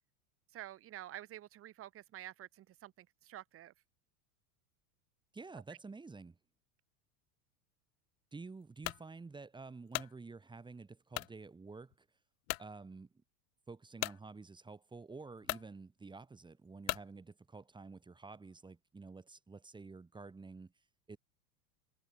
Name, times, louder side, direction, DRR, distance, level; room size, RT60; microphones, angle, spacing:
voice 1, 0.5-3.7, right 13 dB, 30° right, 2.2 m, -49 dB
voice 2, 5.3-6.4 8.3-12.1 12.6-13.1 13.7-21.2, right 4 dB, 10° right, 4.3 m, -50 dB
sound 1, 8.8-9.1 9.6-10.1 11.1-11.4 11.9-12.0 12.5-12.7 14.0-14.2 15.0-15.1 15.4-15.7 16.8-17.1, left 26 dB, 60° left, 0.9 m, -38 dB
supercardioid pair, 150°, 45 cm